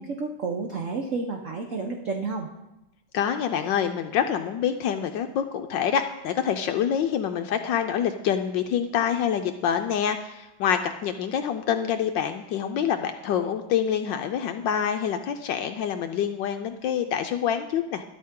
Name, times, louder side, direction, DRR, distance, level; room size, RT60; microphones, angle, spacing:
voice 1, 0.0-2.5, right 4 dB, 55° right, 3 dB, 0.9 m, -30 dB
voice 2, 3.1-18.0, left 8 dB, 75° left, 7 dB, 1.2 m, -26 dB
13.0 x 11.5 x 3.7 m, 0.96 s
omnidirectional pair, 2.3 m